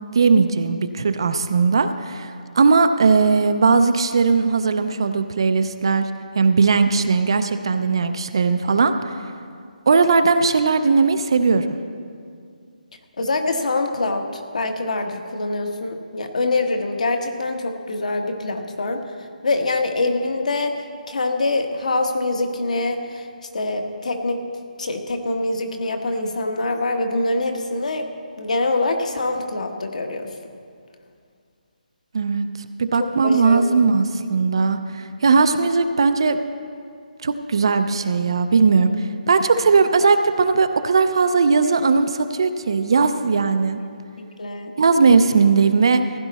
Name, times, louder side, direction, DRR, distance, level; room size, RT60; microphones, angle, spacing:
voice 1, 0.1-6.1 6.3-8.9 9.9-11.8 32.1-32.5 32.8-36.4 37.2-43.8 44.8-46.0, right 4 dB, 35° right, 9 dB, 0.4 m, -18 dB
voice 2, 13.2-14.2 14.5-19.0 19.4-20.7 21.1-23.2 23.5-24.4 24.8-28.1 28.4-30.3 33.2-33.8 44.4-44.7, left 2 dB, 55° left, 5 dB, 1.2 m, -24 dB
15.5 x 11.0 x 4.1 m, 2.3 s
hypercardioid pair, 175°, 5 cm